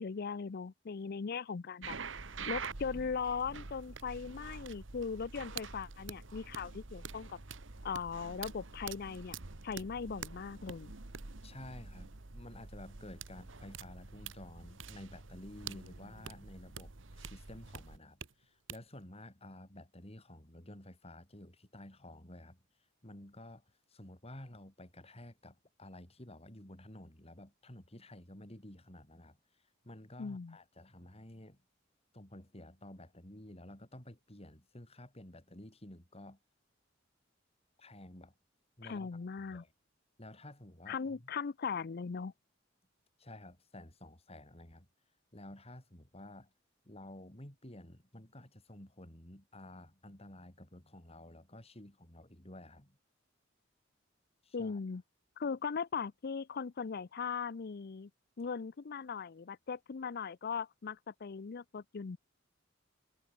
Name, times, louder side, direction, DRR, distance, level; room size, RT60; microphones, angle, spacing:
voice 1, 0.0-2.0 2.5-7.4 7.8-9.4 9.6-10.9 30.2-30.6 38.8-39.6 40.9-42.3 54.5-55.0 55.4-58.1 58.4-62.2, left 5 dB, 55° left, 0.5 m, -39 dB
sound 1, 1.8-18.3 18.7-18.8, right 5 dB, 75° right, 1.6 m, -46 dB
sound 2, 5.9-16.9, equal, 30° right, 7.1 m, -72 dB
voice 2, 11.4-22.6 23.0-29.4 29.8-31.6 32.1-36.4 37.8-38.3 38.8-39.1 39.4-39.7 40.2-41.3 43.2-44.9 45.3-46.5 46.8-53.0 54.4-54.8, left 1 dB, 30° left, 4.9 m, -52 dB
head